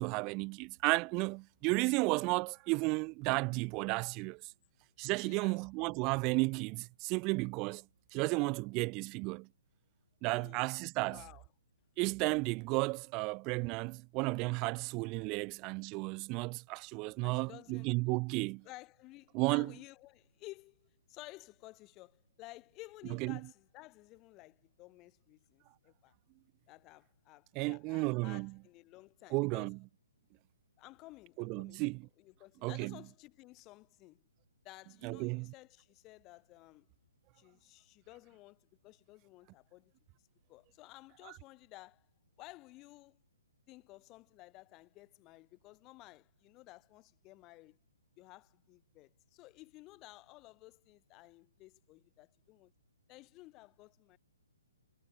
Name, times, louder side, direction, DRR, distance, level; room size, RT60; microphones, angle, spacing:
voice 1, 0.0-4.4 5.0-7.8 8.1-9.5 10.2-11.2 12.0-18.6 19.3-19.7 23.2-23.4 27.5-28.5 29.3-29.8 31.4-32.0 32.6-32.9 35.0-35.5, right 27 dB, 30° right, 0.7 m, -33 dB
voice 2, 5.2-5.6 10.3-10.7 11.1-11.4 17.2-18.0 18.6-26.1 26.7-29.7 30.8-34.2 34.6-36.9 37.3-39.9 40.5-42.1 42.4-43.2 43.7-47.8 48.2-52.7 53.1-54.2, left 20 dB, 25° left, 7.9 m, -55 dB
hypercardioid pair, 140°, 0 cm